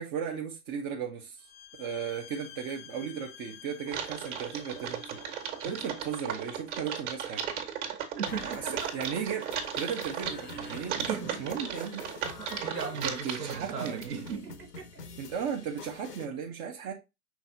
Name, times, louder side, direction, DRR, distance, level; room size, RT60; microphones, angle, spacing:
voice 1, 0.0-1.4 1.8-5.2 5.6-7.5 8.4-9.5 9.7-12.1 13.0-14.0 15.2-16.9, right 7 dB, 20° right, 0.4 m, -36 dB
sound 1, 1.4-6.7, left 10 dB, 40° left, 0.5 m, -51 dB
Typing, 3.9-14.4, right 8 dB, 45° right, 1.3 m, -36 dB
voice 2, 7.8-8.9 11.1-11.4 12.4-15.0, right 6 dB, 85° right, 0.9 m, -37 dB
sound 2, 8.3-16.3, left 5 dB, 85° left, 1.1 m, -46 dB
5.8 x 3.6 x 2.5 m
figure-of-eight pair, 110°, 46 cm